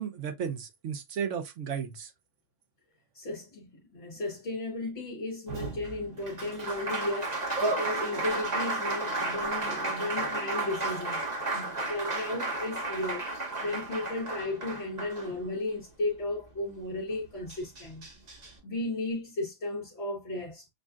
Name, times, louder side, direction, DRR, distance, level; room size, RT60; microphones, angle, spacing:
voice 1, 0.0-2.1, right 7 dB, 70° right, 1.1 m, -34 dB
voice 2, 3.1-13.3 13.6-18.1 18.6-20.7, left 2 dB, 60° left, 1.3 m, -35 dB
Applause, 5.5-15.7 17.1-17.2 17.5-18.5, right 2 dB, 35° right, 1.1 m, -33 dB
6.3 x 2.3 x 2.4 m
omnidirectional pair, 1.3 m